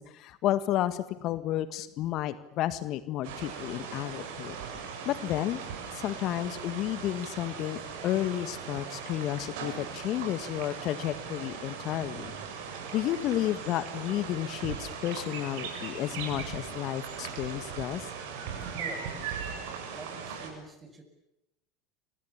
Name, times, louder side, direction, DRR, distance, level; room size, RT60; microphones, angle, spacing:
voice 1, 0.0-4.6 5.1-5.6 5.9-12.3 12.9-18.1, left 13 dB, 50° left, 13 dB, 1.7 m, -32 dB
sound 1, 3.2-20.5, right 6 dB, 65° right, 7.5 m, -39 dB
voice 2, 18.8-19.3 19.9-21.0, right 2 dB, 20° right, 8 dB, 7.6 m, -45 dB
30.0 x 25.5 x 7.3 m, 0.86 s
hypercardioid pair, 75°, 0 cm